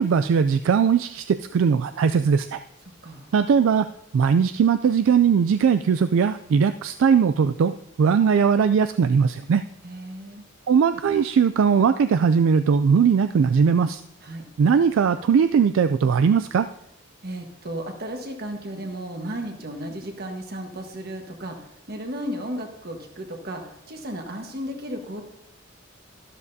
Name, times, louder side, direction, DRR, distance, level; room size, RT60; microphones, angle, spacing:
voice 1, 0.0-2.6 3.3-3.9 4.1-9.6 10.7-14.0 14.6-16.7, right 6 dB, 70° right, 10 dB, 0.3 m, -19 dB
voice 2, 9.8-10.4 14.2-14.4 17.2-25.2, right 1 dB, 50° right, 3 dB, 1.4 m, -34 dB
12.5 x 12.0 x 2.7 m, 0.78 s
head